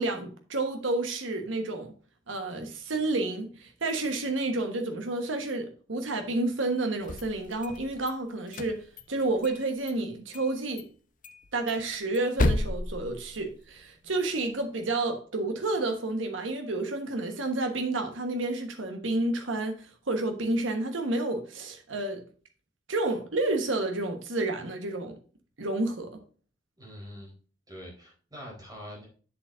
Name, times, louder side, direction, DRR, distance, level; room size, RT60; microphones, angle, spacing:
voice 1, 0.0-1.9 2.3-10.9 11.5-22.2 22.9-25.2 25.6-26.1, right 2 dB, 85° right, 1.3 m, -30 dB
sound 1, 6.9-8.1 8.5-9.6 9.9-10.0 10.3-10.5 10.8-10.9 11.2-13.8, left 2 dB, 45° left, 0.8 m, -32 dB
voice 2, 26.8-27.3 27.7-29.1, equal, 20° right, 4.0 m, -44 dB
8.0 x 7.3 x 2.6 m
head